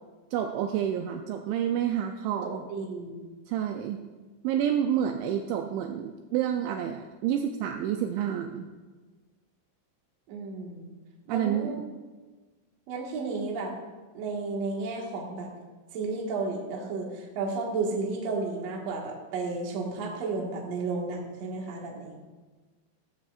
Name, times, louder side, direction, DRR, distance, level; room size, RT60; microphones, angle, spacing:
voice 1, 0.3-2.6 3.5-4.0 4.4-8.7 11.3-11.9, right 9 dB, 85° right, 5 dB, 2.7 m, -29 dB
voice 2, 2.7-3.3 10.3-10.9 11.3-11.8 12.9-13.7 14.1-15.5 15.9-22.1, right 3 dB, 60° right, -1 dB, 1.7 m, -32 dB
14.5 x 14.0 x 2.5 m, 1.3 s
omnidirectional pair, 5.7 m